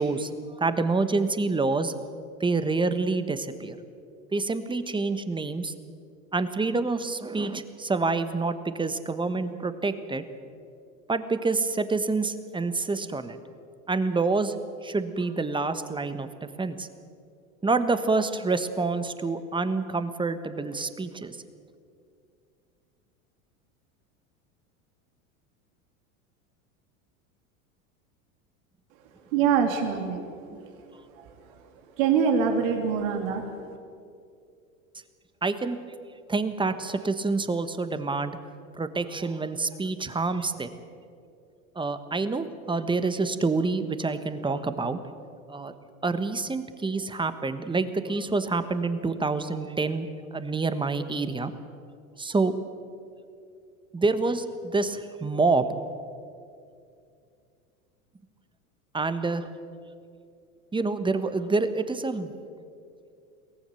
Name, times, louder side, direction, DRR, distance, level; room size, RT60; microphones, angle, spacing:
voice 1, 0.0-1.9 2.4-3.8 4.3-5.7 6.3-10.2 11.1-13.4 13.9-14.5 14.8-16.3 16.6-16.9 17.6-21.4 30.5-30.6 35.4-35.8 36.3-38.4 38.7-40.7 41.7-45.0 45.5-45.7 46.0-51.5 52.2-52.5 53.9-55.7 58.9-59.5 60.7-62.3, right 3 dB, 10° right, 11 dB, 1.4 m, -27 dB
voice 2, 29.3-30.3 30.6-30.9 31.1-31.3 31.6-31.7 32.0-33.7, right 6 dB, 70° right, 4 dB, 2.8 m, -25 dB
23.0 x 17.5 x 7.1 m, 2.4 s
hypercardioid pair, 100°, 42 cm